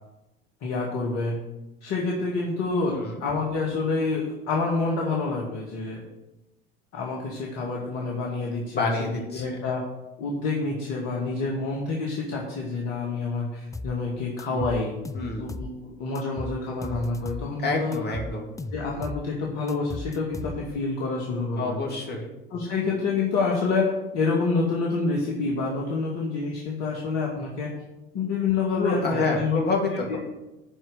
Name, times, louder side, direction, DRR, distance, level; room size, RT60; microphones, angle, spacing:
voice 1, 0.6-1.4 1.8-6.0 6.9-9.8 10.2-14.9 15.4-18.2 18.7-21.8 22.5-27.7 28.1-29.6 30.1-30.2, left 3 dB, 60° left, -2 dB, 2.2 m, -27 dB
voice 2, 8.7-9.6 14.5-14.6 15.1-15.5 17.6-18.5 21.6-22.3 28.8-30.2, left 3 dB, 30° left, 1 dB, 2.8 m, -28 dB
sound 1, 13.7-14.0 14.4-15.7 16.1-17.5 17.9-19.3 19.7-20.9, left 2 dB, 10° left, 0.5 m, -36 dB
12.5 x 4.7 x 7.9 m, 1.0 s
hypercardioid pair, 70°, 31 cm